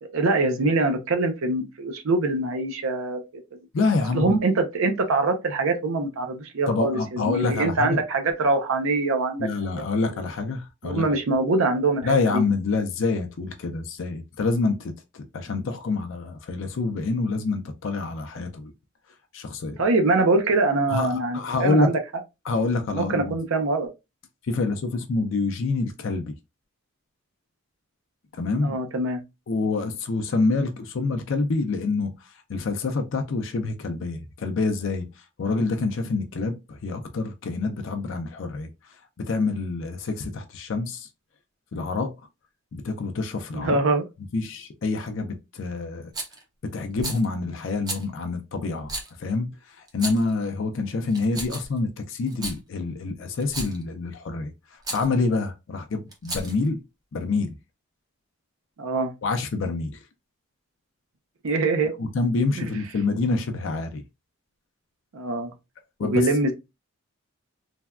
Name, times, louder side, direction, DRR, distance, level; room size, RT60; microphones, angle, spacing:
voice 1, 0.0-3.2 4.1-9.5 10.8-12.4 19.8-22.0 22.9-23.9 28.6-29.2 43.5-44.0 58.8-59.1 61.4-61.9 62.5-62.7 65.1-65.5 66.0-66.5, right 2 dB, 70° right, 0.5 m, -23 dB
voice 2, 3.7-4.4 6.7-8.0 9.4-11.1 12.0-18.7 19.3-19.8 20.9-21.9 22.5-23.4 24.4-26.3 28.4-28.8 29.5-38.7 39.2-41.1 41.7-42.1 42.7-43.8 44.3-46.1 46.6-56.8 57.1-57.6 59.2-60.0 62.0-64.0 66.0-66.3, left 3 dB, 60° left, 0.4 m, -27 dB
Rattle, 46.1-46.4 47.0-47.2 47.9-48.0 48.9-49.1 49.9-50.3 51.1-51.8 52.3-52.6 53.4-53.8 54.8-55.1 56.1-56.7, right 2 dB, 20° right, 0.5 m, -33 dB
3.3 x 2.2 x 2.3 m
head